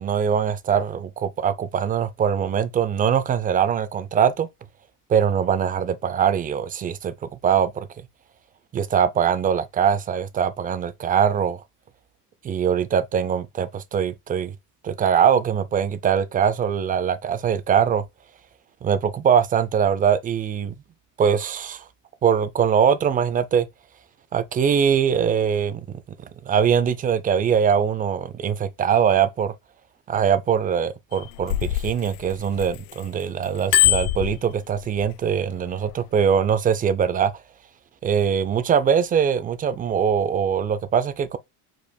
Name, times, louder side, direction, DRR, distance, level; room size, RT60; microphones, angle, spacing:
voice 1, 0.0-4.5 5.1-7.9 8.7-11.6 12.4-14.5 14.8-18.0 18.8-20.8 21.2-21.8 22.2-23.7 24.3-29.5 30.1-37.3 38.0-41.4, right 7 dB, 20° right, 0.3 m, -22 dB
Bicycle bell, 31.1-33.0 33.4-35.1 35.7-35.9, left 16 dB, 70° left, 0.6 m, -23 dB
5.0 x 4.5 x 2.2 m
supercardioid pair, 125°, 44 cm